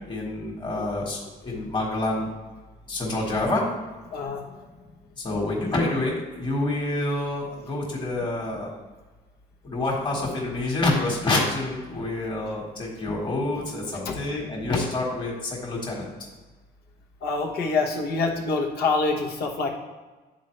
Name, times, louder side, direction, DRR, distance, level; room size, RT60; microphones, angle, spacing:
voice 1, 0.1-2.3 2.9-3.6 5.2-8.7 9.6-16.0, left 2 dB, 25° left, -3 dB, 1.7 m, -27 dB
voice 2, 4.1-4.6 14.0-14.2 17.2-19.7, left 3 dB, 70° left, 2 dB, 1.1 m, -26 dB
9.0 x 4.0 x 3.3 m, 1.3 s
cardioid pair, 110°, 17 cm